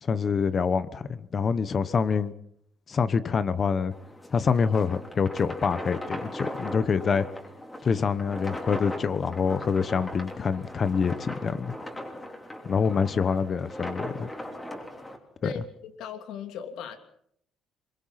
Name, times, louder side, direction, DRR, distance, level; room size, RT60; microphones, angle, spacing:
voice 1, 0.0-2.3 2.9-3.9 4.3-7.3 7.8-11.7 12.6-14.3 15.4-15.5, left 6 dB, 35° left, 1.0 m, -26 dB
sound 1, 3.9-15.2, left 1 dB, 10° left, 3.3 m, -39 dB
voice 2, 15.4-17.0, left 7 dB, 80° left, 3.1 m, -37 dB
26.5 x 23.0 x 5.9 m
cardioid pair, 150°, 0 cm